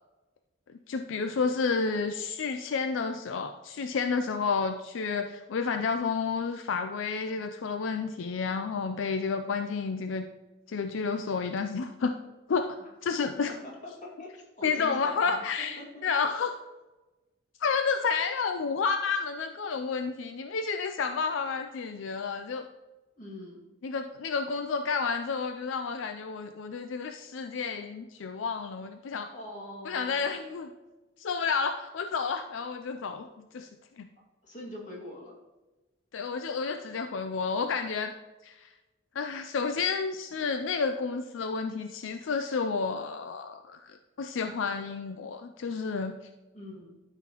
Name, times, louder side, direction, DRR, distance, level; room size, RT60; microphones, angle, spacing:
voice 1, 0.9-10.3 10.7-12.1 12.5-12.8 13.0-13.5 14.6-16.5 17.6-22.6 23.8-29.3 29.9-30.7 31.2-33.3 33.5-33.7 34.0-34.1 36.1-38.1 38.4-38.7 39.1-46.1, left 5 dB, 75° left, 7 dB, 0.4 m, -30 dB
voice 2, 13.5-15.4 15.8-16.2 23.2-23.6 29.3-30.2 34.4-35.4 46.5-47.0, left 1 dB, 40° left, -3 dB, 2.2 m, -43 dB
12.0 x 5.7 x 3.0 m, 1.1 s
head